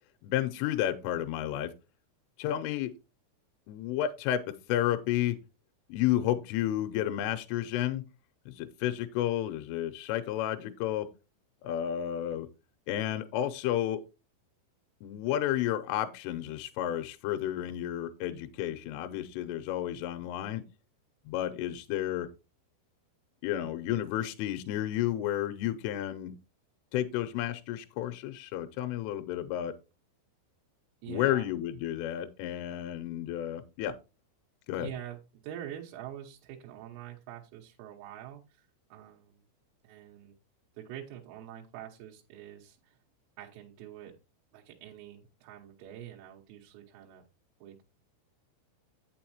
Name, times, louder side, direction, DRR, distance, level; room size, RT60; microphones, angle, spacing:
voice 1, 0.2-1.7 2.4-2.9 3.7-4.4 4.7-5.4 5.9-8.0 8.5-11.1 11.6-12.5 12.9-14.0 15.0-20.6 21.3-22.3 23.4-26.4 26.9-29.7 31.1-33.9 34.7-34.9, left 12 dB, 85° left, 8 dB, 3.1 m, -31 dB
voice 2, 31.0-31.5 34.8-39.4 39.8-40.4 40.7-43.0 43.4-44.2 44.5-47.3 47.6-47.8, right 11 dB, 90° right, -1 dB, 3.6 m, -45 dB
8.6 x 7.7 x 2.9 m, 0.28 s
omnidirectional pair, 5.9 m